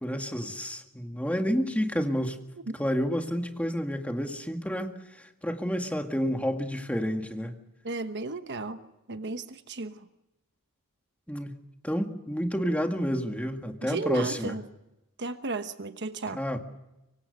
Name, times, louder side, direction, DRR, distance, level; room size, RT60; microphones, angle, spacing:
voice 1, 0.0-2.4 2.8-7.5 11.3-11.6 11.8-14.6 16.3-16.6, equal, 5° left, 4 dB, 2.0 m, -30 dB
voice 2, 7.8-8.8 9.1-10.1 13.8-14.6 15.2-16.4, right 3 dB, 55° right, 9 dB, 1.1 m, -34 dB
25.0 x 24.0 x 6.7 m, 0.96 s
head